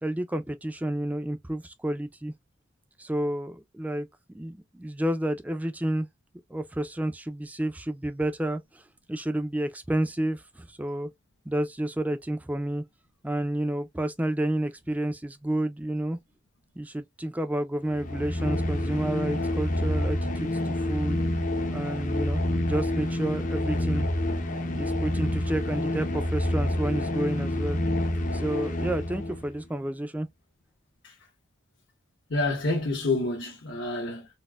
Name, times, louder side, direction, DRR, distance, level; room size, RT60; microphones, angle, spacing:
voice 1, 0.0-2.3 3.0-4.1 4.3-6.1 6.5-8.8 9.1-11.1 11.5-12.8 13.2-16.2 16.8-21.2 21.7-24.1 24.8-27.8 28.3-30.3, right 1 dB, 10° right, 0.3 m, -30 dB
sound 1, 17.9-29.5, left 1 dB, 40° left, 0.6 m, -28 dB
voice 2, 32.3-34.3, left 2 dB, 70° left, 1.1 m, -28 dB
4.1 x 2.1 x 2.2 m
head